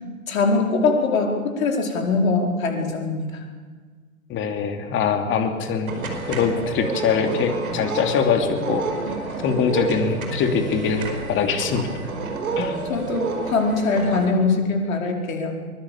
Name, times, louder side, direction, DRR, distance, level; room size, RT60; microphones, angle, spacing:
voice 1, 0.3-3.4 12.9-15.5, left 3 dB, 65° left, 1 dB, 4.8 m, -22 dB
voice 2, 4.3-5.9 6.2-8.9 9.4-11.9 12.6-12.8, left 6 dB, 30° left, 5 dB, 2.9 m, -23 dB
sound 1, 5.9-14.3, right 4 dB, 75° right, 5.1 m, -29 dB
23.5 x 21.0 x 7.3 m, 1.5 s
hypercardioid pair, 110°, 43 cm